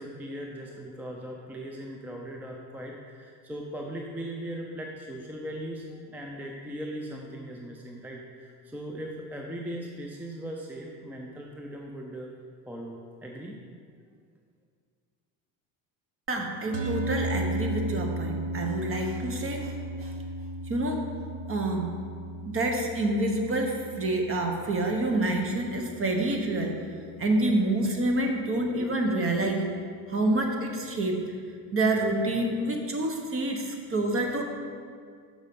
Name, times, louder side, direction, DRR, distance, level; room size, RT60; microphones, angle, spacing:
voice 1, 0.0-12.3 12.7-13.6, right 1 dB, 5° right, 0 dB, 0.5 m, -39 dB
voice 2, 16.3-20.1 20.7-21.0 21.5-21.9 22.4-26.8 27.2-29.7 30.1-31.2 31.7-34.4, right 2 dB, 30° right, 3 dB, 1.1 m, -27 dB
sound 1, 16.7-27.2, right 1 dB, 70° right, 1.1 m, -35 dB
6.4 x 5.4 x 5.3 m, 2.1 s
cardioid pair, 110°, 42 cm